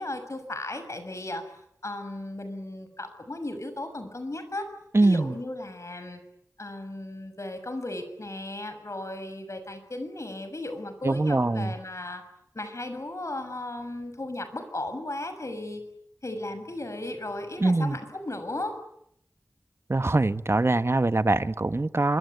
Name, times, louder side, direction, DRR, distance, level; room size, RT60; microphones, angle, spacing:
voice 1, 0.0-1.5 1.8-4.7 5.0-6.2 6.6-12.2 12.5-15.8 16.2-18.8, left 1 dB, 60° left, 6.7 m, -35 dB
voice 2, 4.9-5.4 11.0-11.7 17.6-18.0 19.9-22.2, right 2 dB, 50° right, 1.4 m, -23 dB
26.0 x 23.0 x 9.5 m
wide cardioid pair, 50°, 6 cm